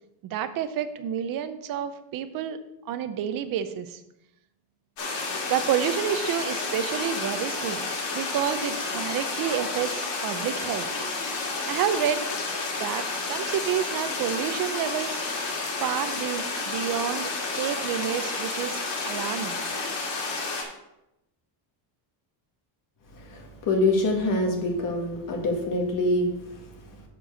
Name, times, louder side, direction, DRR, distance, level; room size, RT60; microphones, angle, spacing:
voice 1, 0.2-2.6 2.9-4.0 5.5-7.8 8.1-10.9 11.7-12.2 12.8-15.2 15.8-19.6, right 9 dB, 45° right, 11 dB, 0.7 m, -29 dB
sound 1, 5.0-20.6, left 3 dB, 60° left, 2.5 m, -31 dB
voice 2, 23.2-26.6, left 2 dB, 40° left, 2 dB, 1.7 m, -25 dB
7.5 x 4.7 x 6.4 m, 0.88 s
cardioid pair, 170°, 48 cm